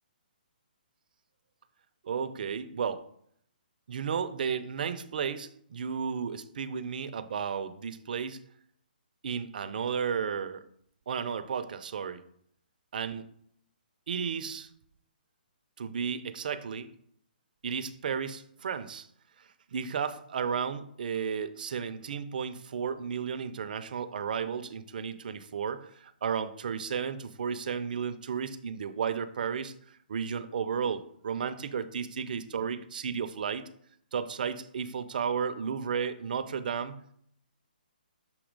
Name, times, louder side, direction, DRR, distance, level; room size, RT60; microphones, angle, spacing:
voice 1, 2.0-3.1 3.9-8.4 9.2-10.6 11.1-12.2 12.9-13.3 14.1-14.7 15.8-16.9 17.6-19.1 19.4-29.7 30.1-33.7 34.1-37.1, right 6 dB, 60° right, 11 dB, 0.6 m, -33 dB
7.1 x 2.8 x 5.2 m, 0.66 s
hypercardioid pair, 150°, 5 cm